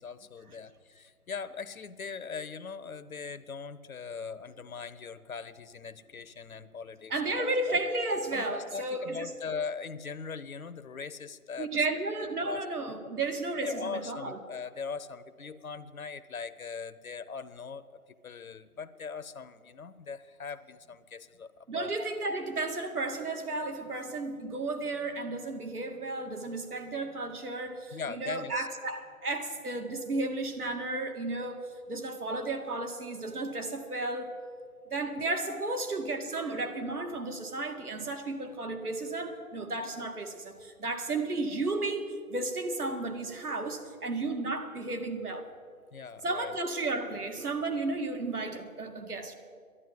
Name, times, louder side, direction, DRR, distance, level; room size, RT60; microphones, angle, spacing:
voice 1, 0.0-7.8 8.3-11.7 12.4-12.6 13.6-21.9 27.9-28.7 35.2-35.4 45.9-46.5, left 5 dB, 65° left, 13 dB, 0.9 m, -40 dB
voice 2, 7.1-9.3 11.6-14.4 21.7-34.4 34.9-45.5 46.2-49.3, right 2 dB, 80° right, 5 dB, 2.0 m, -33 dB
11.0 x 11.0 x 9.2 m, 2.1 s
figure-of-eight pair, 165°, 44 cm